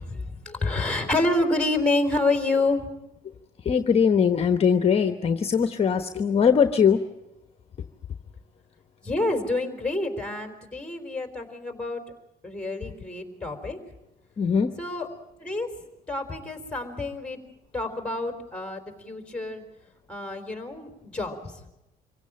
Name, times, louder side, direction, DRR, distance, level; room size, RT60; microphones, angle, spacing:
voice 1, 0.0-2.9 9.0-12.0 12.4-13.8 14.8-15.1 15.4-15.7 16.1-17.4 17.7-19.6 20.1-21.6, left 2 dB, 5° left, 5 dB, 3.9 m, -28 dB
voice 2, 3.6-7.0 14.4-14.7, left 7 dB, 35° left, 9 dB, 1.1 m, -21 dB
25.5 x 16.5 x 8.8 m, 0.94 s
cardioid pair, 110°, 17 cm